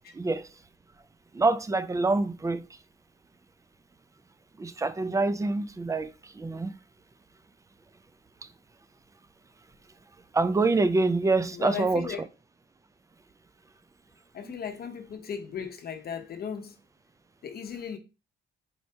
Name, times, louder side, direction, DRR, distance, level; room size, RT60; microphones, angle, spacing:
voice 1, 1.3-2.6 4.6-6.1 6.4-6.7 10.3-12.1 14.4-14.5, right 3 dB, 15° right, 0.4 m, -25 dB
voice 2, 11.5-12.2 14.3-16.7 17.4-18.0, left 7 dB, 50° left, 0.8 m, -36 dB
4.2 x 2.8 x 3.3 m
cardioid pair, 90°, 20 cm